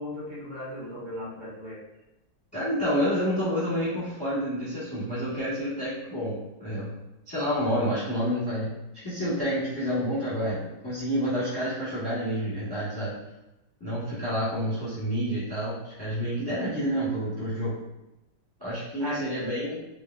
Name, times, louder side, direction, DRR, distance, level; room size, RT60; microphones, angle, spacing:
voice 1, 0.0-1.8 19.0-19.2, left 1 dB, 65° right, -8 dB, 1.7 m, -36 dB
voice 2, 2.5-6.9 7.3-13.1 13.8-17.7 18.6-19.8, equal, 15° left, -11 dB, 0.8 m, -29 dB
3.9 x 2.3 x 2.3 m, 0.94 s
omnidirectional pair, 2.1 m